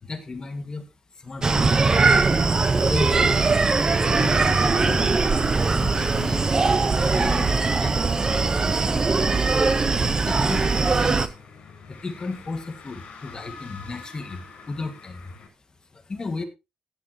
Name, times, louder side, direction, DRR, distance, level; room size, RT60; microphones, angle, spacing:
voice 1, 0.0-0.9 1.1-2.0 2.6-3.4 4.0-5.2 5.7-6.5 6.8-8.0 8.4-9.6 10.2-11.3 11.9-15.3 15.9-16.4, left 3 dB, 30° left, 8 dB, 1.7 m, -35 dB
Screaming, 1.4-11.3, right 4 dB, 30° right, 0.9 m, -21 dB
sound 1, 2.6-15.5, left 5 dB, 70° left, 5.8 m, -46 dB
16.5 x 8.9 x 2.9 m, 0.26 s
cardioid pair, 115°, 2 cm